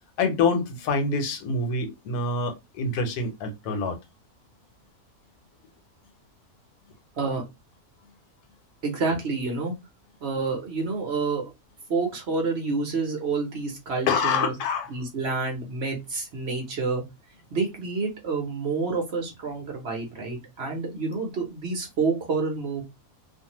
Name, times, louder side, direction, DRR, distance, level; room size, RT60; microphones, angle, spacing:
voice 1, 0.2-4.0 14.1-14.9, left 4 dB, 85° left, 1.3 m, -26 dB
voice 2, 8.8-9.7 10.2-11.5 11.9-14.5 14.9-17.0 17.5-22.8, right 4 dB, 50° right, 0.9 m, -28 dB
2.5 x 2.5 x 2.9 m
omnidirectional pair, 1.6 m